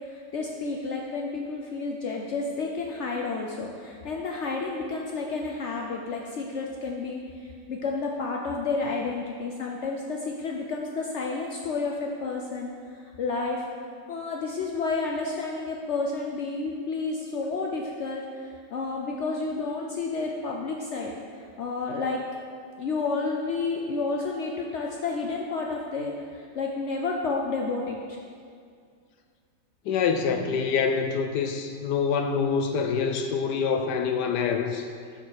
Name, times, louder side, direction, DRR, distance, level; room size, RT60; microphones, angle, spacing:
voice 1, 0.1-7.2 7.7-12.7 13.2-13.7 14.1-18.2 18.7-21.2 21.6-22.2 22.8-28.2, left 3 dB, 90° left, 0 dB, 0.6 m, -30 dB
voice 2, 29.9-34.9, left 6 dB, 75° left, 5 dB, 1.1 m, -26 dB
6.7 x 5.3 x 6.4 m, 2.2 s
omnidirectional pair, 2.0 m